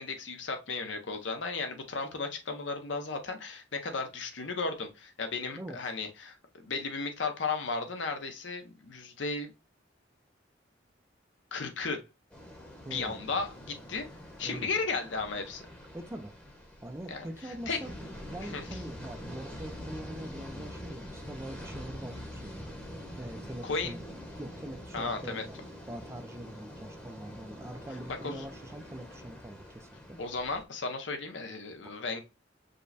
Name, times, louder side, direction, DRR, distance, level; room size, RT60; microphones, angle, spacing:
voice 1, 0.0-6.4 6.6-9.5 11.5-12.0 12.9-14.1 14.4-15.6 17.1-17.8 18.4-18.6 23.6-23.9 24.9-25.4 28.2-28.4 30.2-32.2, left 4 dB, 80° left, 0.8 m, -35 dB
sound 1, 12.3-30.6, equal, 5° left, 0.9 m, -45 dB
voice 2, 12.8-13.2 14.4-14.7 15.9-16.3 16.8-17.9 18.3-22.7 23.2-24.0 24.4-30.2, right 1 dB, 15° right, 0.4 m, -43 dB
5.2 x 2.2 x 4.0 m
head